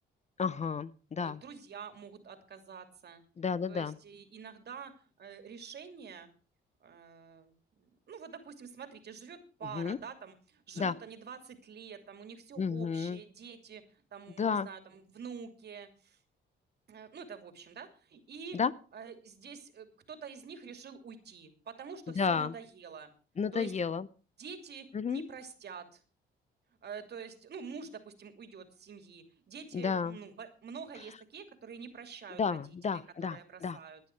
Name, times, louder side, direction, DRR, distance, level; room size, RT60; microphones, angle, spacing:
voice 1, 0.4-1.4 3.4-4.0 9.7-10.0 10.8-10.9 12.6-13.2 14.4-14.7 18.5-18.7 22.2-22.5 23.4-24.1 24.9-25.2 29.7-30.2 32.4-33.8, left 5 dB, 35° left, 17 dB, 0.7 m, -32 dB
voice 2, 1.2-3.2 3.7-4.9 5.2-6.3 6.8-16.2 16.9-18.6 18.9-23.1 23.5-23.7 24.4-26.0 26.8-34.0, right 6 dB, 55° right, 7 dB, 2.8 m, -47 dB
17.5 x 10.0 x 4.6 m, 0.37 s
cardioid pair, 90°, 20 cm